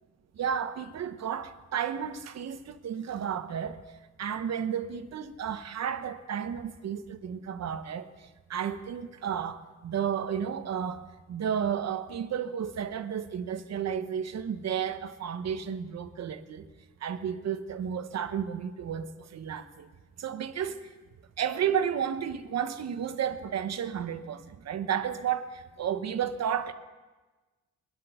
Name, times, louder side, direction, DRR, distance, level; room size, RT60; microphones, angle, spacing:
voice 1, 0.4-3.8 4.2-8.1 8.5-16.7 17.0-19.9 20.2-20.8 21.4-26.7, right 8 dB, 60° right, 1.1 m, -32 dB
23.0 x 7.7 x 5.7 m
cardioid pair, 95°, 30 cm